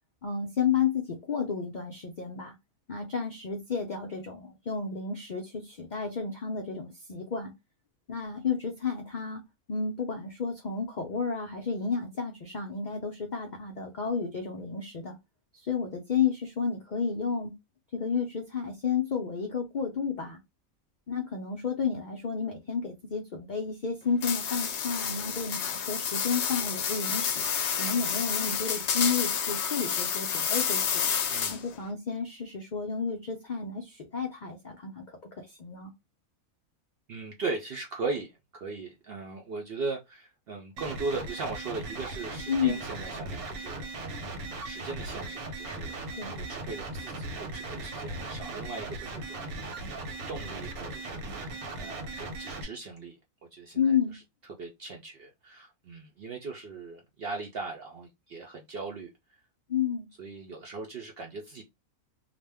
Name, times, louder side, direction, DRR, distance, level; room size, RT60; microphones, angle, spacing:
voice 1, 0.2-2.5 2.9-7.5 8.1-9.4 9.7-15.2 15.5-17.5 17.9-20.4 21.1-27.4 27.7-31.1 31.5-35.9 42.5-42.8 46.2-46.3 53.8-54.1 59.7-60.1, left 6 dB, 85° left, 0.4 m, -31 dB
sound 1, 24.2-31.8, left 7 dB, 65° left, 0.7 m, -29 dB
voice 2, 37.1-49.4 50.3-53.2 53.5-54.2 54.6-59.1 60.2-61.6, right 3 dB, 70° right, 0.5 m, -39 dB
sound 2, 40.8-52.6, right 2 dB, 90° right, 1.1 m, -38 dB
2.5 x 2.1 x 3.3 m
omnidirectional pair, 1.5 m